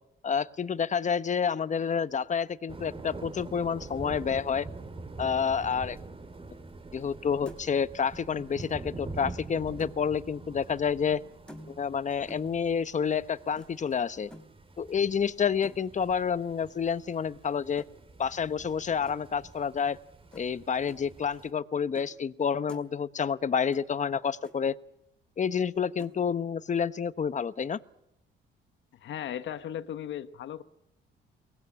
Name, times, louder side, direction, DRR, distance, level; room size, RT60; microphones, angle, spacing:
voice 1, 0.2-4.7 5.2-6.0 6.9-11.2 11.7-14.3 14.8-17.8 18.2-20.0 20.3-24.7 25.4-27.8, left 7 dB, 40° left, 15 dB, 1.0 m, -29 dB
sound 1, 2.7-21.5, right 3 dB, 25° right, 2.4 m, -45 dB
sound 2, 7.0-7.2 7.5-7.8 9.0-10.1 11.5-11.9 12.3-12.6 13.6-13.7 14.3-14.5 15.6-16.0 17.8-17.9 19.1-19.2 20.3-20.5 20.9-21.0 21.9-22.1 22.4-22.9 23.7-23.8 24.1-24.2 24.4-24.6 26.0-26.2, equal, 5° left, 3.3 m, -48 dB
voice 2, 29.0-30.6, left 10 dB, 70° left, 11 dB, 1.1 m, -36 dB
23.0 x 19.0 x 9.8 m, 0.79 s
cardioid pair, 90°, 20 cm